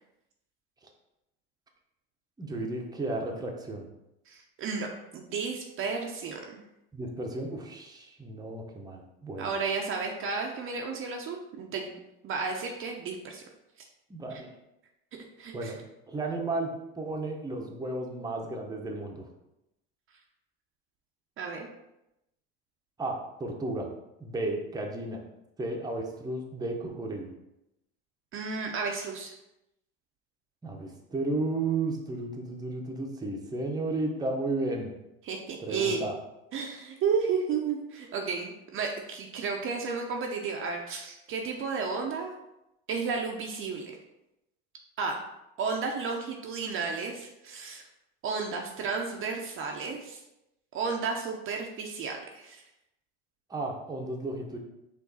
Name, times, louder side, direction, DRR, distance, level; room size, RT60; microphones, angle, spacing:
voice 1, 2.4-3.9 6.9-9.5 14.1-14.5 15.5-15.8 16.1-19.3 23.0-23.9 24.2-25.2 25.6-27.3 30.6-34.9 35.6-36.1 53.5-54.6, right 2 dB, 15° right, 1 dB, 0.8 m, -33 dB
voice 2, 4.3-6.6 9.4-11.9 12.2-13.4 14.3-14.4 15.4-15.7 21.4-21.7 28.3-29.3 35.2-36.1 36.5-42.3 42.9-44.0 45.0-45.2 45.6-47.8 48.2-50.2 50.7-52.6, right 5 dB, 45° right, 1 dB, 0.7 m, -32 dB
4.7 x 2.6 x 4.0 m, 0.88 s
supercardioid pair, 90°, 30 cm